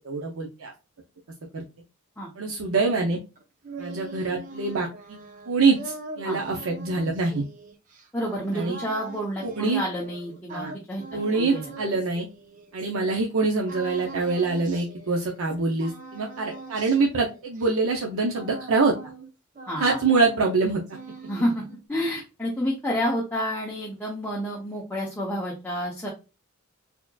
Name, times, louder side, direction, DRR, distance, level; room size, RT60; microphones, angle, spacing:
voice 1, 0.0-0.7 1.5-1.6 2.4-3.2 3.8-5.2 5.5-7.4 8.5-8.8 9.4-9.8 10.5-10.7 11.1-12.3 12.7-18.9 19.8-20.8, right 3 dB, 80° right, 1 dB, 0.6 m, -25 dB
sound 1, 3.4-13.2 13.7-15.5 15.8-19.3 19.5-20.6 20.9-21.8, right 3 dB, 40° right, 0.7 m, -42 dB
voice 2, 8.1-11.0 11.3-11.8 19.7-20.0 21.3-26.1, equal, 10° left, -5 dB, 0.7 m, -29 dB
4.2 x 2.9 x 2.3 m, 0.29 s
head